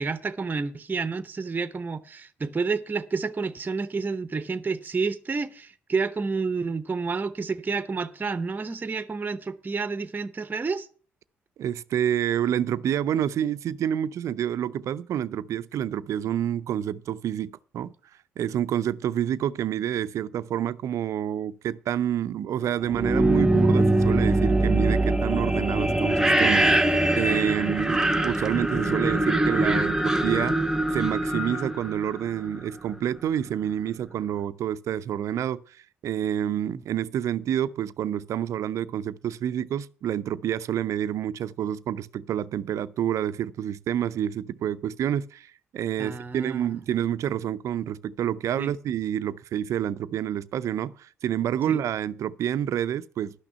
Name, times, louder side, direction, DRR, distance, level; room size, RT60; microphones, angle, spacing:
voice 1, 0.0-10.9 36.7-36.8 46.0-46.8 48.6-48.7 51.7-51.8, right 4 dB, 30° right, 0.7 m, -30 dB
voice 2, 11.6-17.9 18.4-30.6 30.9-53.4, right 10 dB, 65° right, 0.5 m, -28 dB
sound 1, 22.8-32.7, right 1 dB, 10° right, 0.9 m, -23 dB
11.5 x 6.1 x 6.7 m
hypercardioid pair, 50°, 6 cm